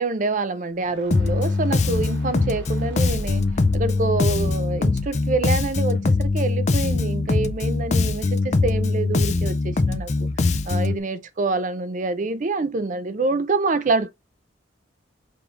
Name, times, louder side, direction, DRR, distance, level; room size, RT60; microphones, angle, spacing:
voice 1, 0.0-3.4 3.7-10.3 10.6-14.1, right 3 dB, 40° right, 0.5 m, -26 dB
sound 1, 0.7-6.0, left 1 dB, 70° right, 1.2 m, -40 dB
Bass guitar, 1.1-11.0, left 3 dB, 35° left, 0.4 m, -22 dB
4.7 x 3.5 x 2.4 m
head